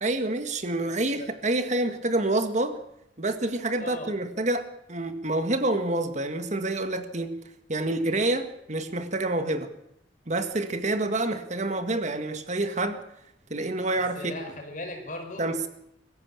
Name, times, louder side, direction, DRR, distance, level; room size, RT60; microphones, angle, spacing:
voice 1, 0.0-2.8 3.2-7.3 7.7-9.7 10.3-13.0 13.5-14.3 15.4-15.7, right 2 dB, 40° right, 8 dB, 1.8 m, -27 dB
voice 2, 3.8-4.1 13.9-15.5, left 2 dB, 45° left, 4 dB, 5.3 m, -38 dB
23.5 x 14.5 x 8.7 m, 0.76 s
head